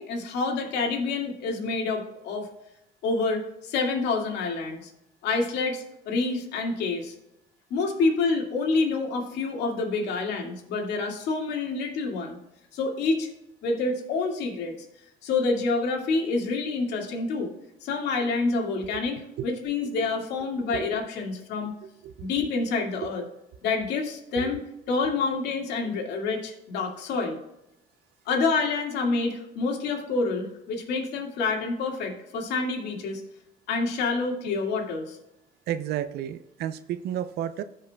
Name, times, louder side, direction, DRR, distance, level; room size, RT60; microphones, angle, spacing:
voice 1, 0.0-2.5 3.0-4.9 5.2-7.1 7.7-12.4 12.7-13.3 13.6-14.7 15.2-17.5 17.8-21.7 22.2-23.2 23.6-27.4 28.3-33.2 33.7-35.2, left 3 dB, 80° left, 1 dB, 2.2 m, -27 dB
voice 2, 35.7-37.6, right 10 dB, 70° right, 12 dB, 0.6 m, -32 dB
15.5 x 5.6 x 2.3 m, 0.87 s
cardioid pair, 110°, 17 cm